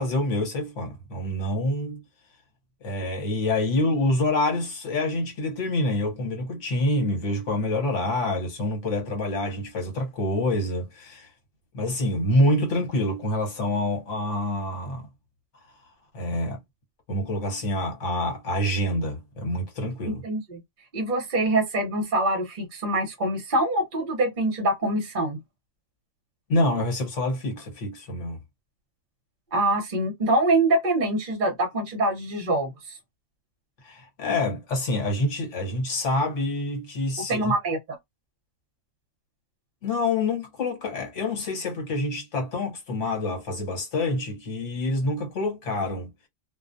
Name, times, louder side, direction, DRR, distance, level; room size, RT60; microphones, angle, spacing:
voice 1, 0.0-2.0 2.8-11.3 11.7-15.1 16.1-16.6 17.1-20.2 26.5-28.4 33.8-37.5 39.8-46.1, left 1 dB, 65° left, 1.3 m, -26 dB
voice 2, 20.1-20.6 20.9-25.4 29.5-32.7 37.3-38.0, right 2 dB, 45° right, 0.8 m, -24 dB
2.4 x 2.0 x 2.5 m
omnidirectional pair, 1.4 m